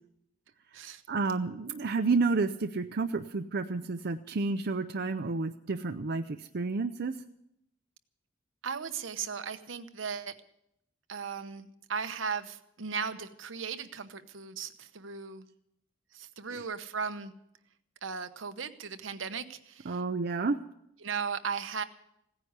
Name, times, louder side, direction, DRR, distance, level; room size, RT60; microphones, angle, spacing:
voice 1, 1.1-7.1 16.5-16.6 19.9-20.6, right 4 dB, 60° right, 7 dB, 0.6 m, -30 dB
voice 2, 8.6-10.3 11.1-15.5 16.1-17.3 18.0-20.0 21.0-21.8, right 6 dB, 80° right, 9 dB, 1.0 m, -37 dB
16.5 x 9.9 x 8.1 m, 0.78 s
head